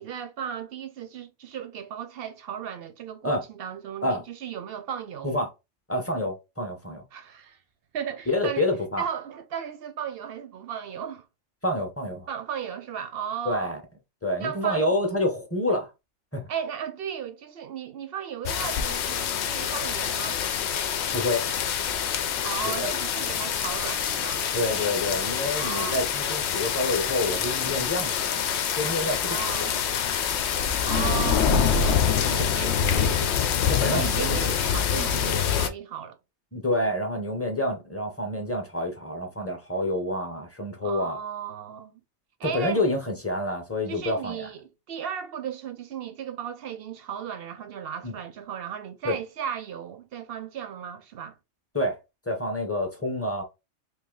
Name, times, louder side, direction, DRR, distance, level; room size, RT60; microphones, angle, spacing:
voice 1, 0.0-5.4 7.1-7.6 7.9-8.7 9.0-11.3 12.3-13.7 14.4-14.9 16.5-20.4 22.4-24.4 25.5-26.0 29.2-29.8 30.8-33.4 33.9-36.2 40.8-42.0 42.4-42.9 43.9-51.4, right 8 dB, 60° right, 0.7 m, -35 dB
voice 2, 5.9-7.0 8.3-9.0 11.6-12.3 13.5-13.8 14.2-15.9 16.3-16.5 21.1-21.5 22.7-22.9 24.5-29.8 32.4-32.5 33.7-34.4 36.5-41.2 42.4-44.5 48.0-48.1 49.0-49.2 51.7-52.0 52.3-53.4, left 1 dB, 15° left, 0.6 m, -28 dB
sound 1, 18.4-35.7, left 7 dB, 65° left, 0.8 m, -26 dB
3.1 x 2.8 x 3.7 m
omnidirectional pair, 1.3 m